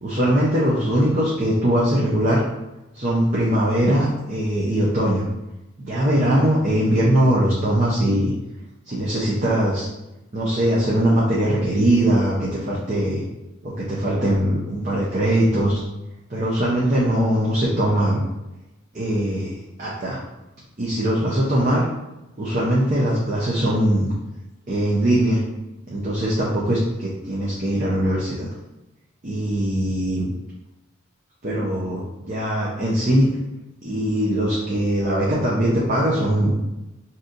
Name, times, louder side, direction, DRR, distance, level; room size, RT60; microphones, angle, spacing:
voice 1, 0.0-2.4 2.9-5.2 5.8-8.3 8.9-9.9 10.3-13.2 13.6-15.8 16.3-18.2 18.9-19.5 19.8-20.2 20.8-21.8 22.4-24.1 24.7-25.4 25.9-28.5 29.2-30.3 31.4-33.3 33.8-36.6, right 1 dB, 40° right, -6 dB, 0.6 m, -21 dB
3.9 x 2.8 x 2.5 m, 0.96 s
head